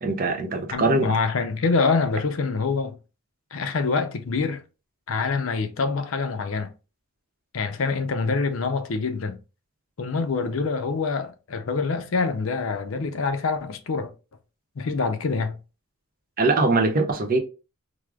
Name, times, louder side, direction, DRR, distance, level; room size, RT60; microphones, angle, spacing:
voice 1, 0.0-1.1 16.4-17.4, right 3 dB, 45° right, 0.6 m, -22 dB
voice 2, 0.7-3.0 3.5-4.6 5.1-6.7 7.5-9.4 10.0-14.1 14.8-15.6, left 4 dB, 70° left, 0.5 m, -25 dB
4.7 x 2.0 x 2.3 m
head